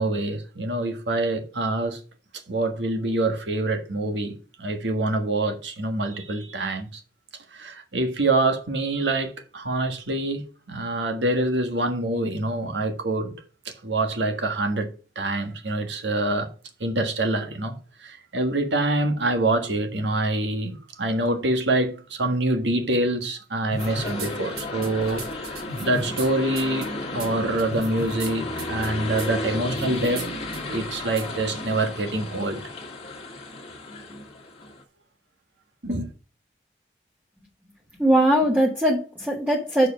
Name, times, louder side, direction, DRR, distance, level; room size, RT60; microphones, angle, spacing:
voice 1, 0.0-2.0 2.5-7.0 7.5-13.4 13.6-14.9 15.1-16.5 16.8-30.3 30.7-32.6 35.8-36.1, right 2 dB, 90° right, 1.5 m, -26 dB
sound 1, 23.7-24.3 24.6-26.3 26.6-26.9 27.2-27.3 27.6-28.3 28.6-28.9 29.2-29.3 29.7-30.3 30.5-30.6 31.2-31.3, right 1 dB, 55° right, 2.5 m, -34 dB
sound 2, 23.8-34.8, left 2 dB, 35° left, 1.7 m, -33 dB
voice 2, 38.0-39.9, right 1 dB, 10° right, 1.1 m, -20 dB
6.8 x 4.9 x 6.3 m
head